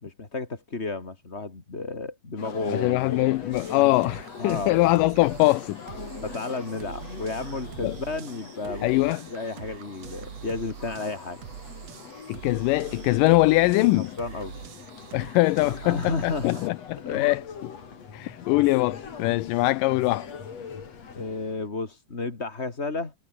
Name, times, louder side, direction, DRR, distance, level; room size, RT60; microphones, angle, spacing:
voice 1, 0.0-3.4 3.7-4.0 4.4-4.7 6.2-8.9 9.3-11.4 13.7-14.5 15.6-16.6 17.0-17.3 21.1-23.1, left 3 dB, 20° left, 2.5 m, -32 dB
sound 1, 2.4-21.7, left 6 dB, 50° left, 4.1 m, -42 dB
voice 2, 2.7-5.8 7.8-8.0 8.8-9.2 12.3-14.1 15.1-17.7 18.1-20.3, left 20 dB, 80° left, 2.2 m, -22 dB
sound 2, 3.5-16.7, right 9 dB, 55° right, 2.6 m, -43 dB
omnidirectional pair, 3.9 m